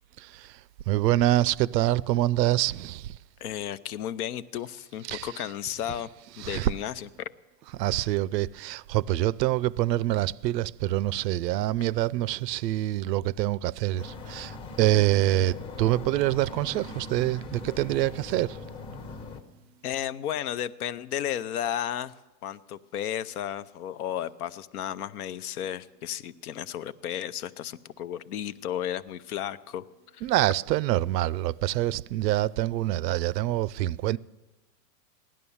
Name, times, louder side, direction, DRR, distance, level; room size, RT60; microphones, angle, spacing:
voice 1, 0.2-0.6 0.9-3.2 5.1-5.3 6.4-6.7 7.7-18.6 30.2-34.2, right 15 dB, 85° right, 0.6 m, -26 dB
voice 2, 3.4-6.1 6.4-7.3 19.8-22.1 22.4-29.8 30.1-30.3, left 10 dB, 65° left, 0.8 m, -33 dB
sound 1, 14.0-19.4, left 3 dB, 30° left, 1.2 m, -40 dB
16.5 x 11.0 x 7.1 m
supercardioid pair, 150°, 48 cm